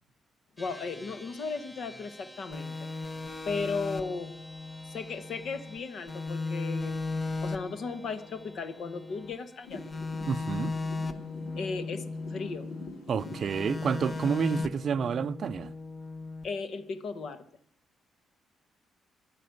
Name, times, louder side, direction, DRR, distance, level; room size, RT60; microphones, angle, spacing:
voice 1, 0.6-2.9 3.4-4.4 4.9-7.1 7.4-9.8 11.6-12.0 12.3-12.7 14.4-14.6 16.4-17.4, left 4 dB, 60° left, 1.3 m, -36 dB
sound 1, 0.6-14.1, equal, 10° left, 2.1 m, -53 dB
sound 2, 2.5-5.8 6.1-9.3 9.7-12.9 13.2-16.4, left 3 dB, 35° left, 1.2 m, -37 dB
sound 3, 9.6-14.7, left 3 dB, 85° left, 2.8 m, -45 dB
voice 2, 10.3-10.7 13.1-15.7, right 7 dB, 55° right, 0.5 m, -29 dB
11.0 x 9.2 x 9.2 m
cardioid pair, 90°, 0 cm